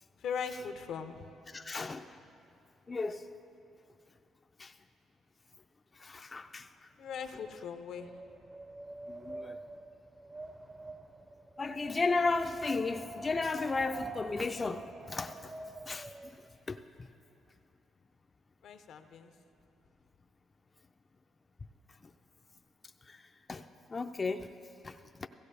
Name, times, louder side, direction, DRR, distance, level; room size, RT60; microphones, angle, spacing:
voice 1, 0.2-1.2 7.0-8.1 18.6-19.3, left 6 dB, 75° left, 8 dB, 0.7 m, -39 dB
voice 2, 1.5-2.0 2.9-3.2 4.6-4.7 6.0-6.7 9.1-9.6 11.6-15.5 15.9-16.1 16.7-16.8 23.1-23.2 23.5-23.6 23.9-24.5 24.8-25.3, left 3 dB, 30° left, 6 dB, 0.4 m, -34 dB
Wind, 7.2-16.4, right 2 dB, 25° right, 0.6 m, -46 dB
16.0 x 15.5 x 3.4 m, 2.6 s
cardioid pair, 90°, 0 cm